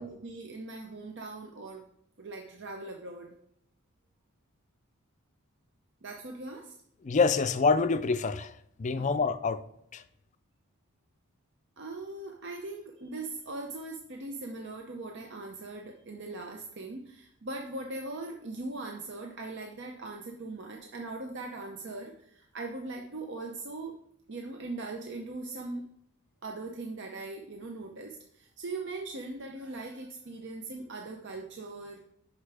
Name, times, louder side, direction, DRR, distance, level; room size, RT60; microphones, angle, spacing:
voice 1, 0.0-1.8 2.2-3.3 6.0-6.7 8.9-9.1 11.8-23.9 24.3-25.8 26.4-32.0, right 2 dB, 55° right, 2 dB, 0.7 m, -40 dB
voice 2, 7.0-8.5 8.8-9.6 9.9-10.0, left 4 dB, 35° left, 13 dB, 0.4 m, -26 dB
9.8 x 5.9 x 3.4 m, 0.73 s
head